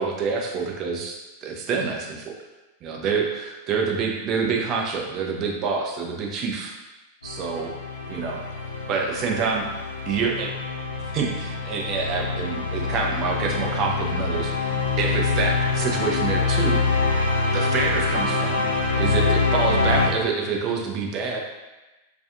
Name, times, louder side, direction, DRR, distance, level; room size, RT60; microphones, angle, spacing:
voice 1, 0.0-2.3 2.8-6.7 7.2-7.7 8.1-8.4 8.9-9.7 10.1-10.5 11.0-14.7 15.0-16.8 17.5-18.7 19.0-21.4, right 5 dB, 35° right, 0 dB, 0.4 m, -27 dB
sound 1, 7.2-20.1, left 4 dB, 75° left, 0.5 m, -25 dB
2.4 x 2.4 x 2.5 m, 1.1 s
figure-of-eight pair, 90°, 0 cm